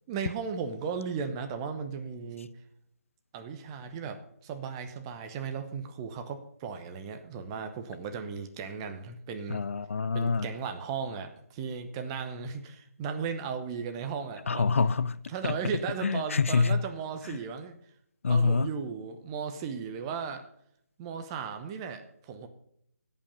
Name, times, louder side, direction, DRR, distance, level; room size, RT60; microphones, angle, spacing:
voice 1, 0.1-2.5 3.3-9.6 10.1-14.7 15.3-17.7 18.3-20.4 21.0-22.5, right 6 dB, 20° right, 0.9 m, -36 dB
voice 2, 9.5-10.5 14.5-15.6 16.0-16.8 18.2-18.7, left 4 dB, 55° left, 0.5 m, -26 dB
17.0 x 5.7 x 5.3 m
figure-of-eight pair, 155°, 8 cm